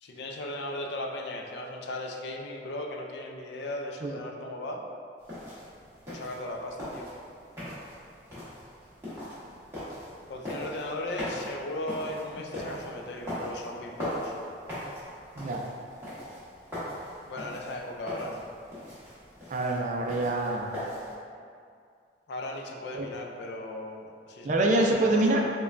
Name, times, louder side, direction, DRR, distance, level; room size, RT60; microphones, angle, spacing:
voice 1, 0.0-4.8 6.1-7.1 10.3-14.4 17.3-18.4 22.3-25.4, left 1 dB, 70° left, 2 dB, 0.4 m, -37 dB
sound 1, 5.2-21.1, equal, 15° right, 1.1 m, -40 dB
voice 2, 15.4-15.7 19.5-20.8 22.9-23.1 24.4-25.4, right 2 dB, 45° right, 0 dB, 0.3 m, -25 dB
4.9 x 2.2 x 2.5 m, 2.3 s
head